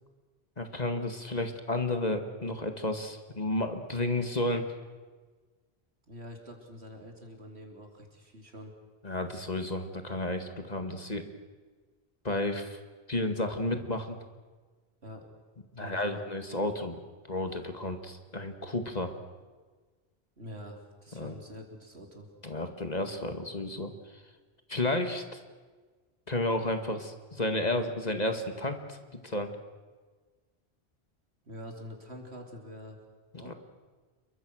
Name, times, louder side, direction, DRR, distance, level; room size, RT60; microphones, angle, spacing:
voice 1, 0.6-4.7 9.0-11.3 12.2-12.8 13.1-14.2 15.7-17.0 17.3-19.1 21.2-21.3 22.4-23.9 24.7-25.4 26.3-29.0 29.2-29.5 33.5-33.6, left 1 dB, 40° left, 6 dB, 2.0 m, -32 dB
voice 2, 6.1-8.7 15.0-15.3 15.8-16.2 20.4-22.3 31.4-33.0 33.4-33.5, equal, 80° right, 2 dB, 3.8 m, -45 dB
28.0 x 23.0 x 6.4 m, 1.4 s
omnidirectional pair, 1.1 m